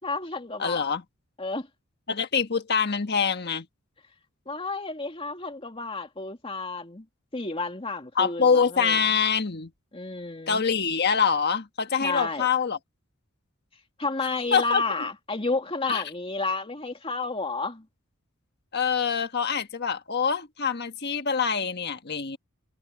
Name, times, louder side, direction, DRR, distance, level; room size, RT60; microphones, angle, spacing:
voice 1, 0.0-0.9 1.4-1.7 4.5-7.1 7.3-9.0 9.9-10.6 12.0-12.5 14.0-17.9, left 3 dB, 25° left, 2.6 m, -31 dB
voice 2, 0.6-1.0 2.1-3.7 8.1-9.7 10.5-12.8 14.5-14.8 15.9-16.0 18.7-22.4, left 6 dB, 50° left, 1.4 m, -25 dB
head